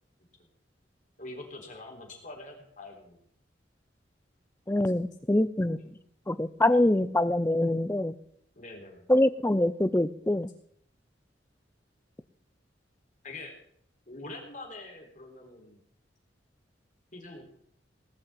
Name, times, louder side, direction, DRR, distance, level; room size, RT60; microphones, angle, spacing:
voice 1, 1.2-3.2 5.7-5.9 6.6-7.1 8.6-9.1 13.2-13.5 14.1-15.8 17.1-17.5, left 2 dB, 45° left, 2 dB, 3.9 m, -45 dB
voice 2, 4.7-5.9 6.3-8.1 9.1-10.5, left 1 dB, 15° left, 14 dB, 0.6 m, -25 dB
19.0 x 6.3 x 8.9 m, 0.67 s
head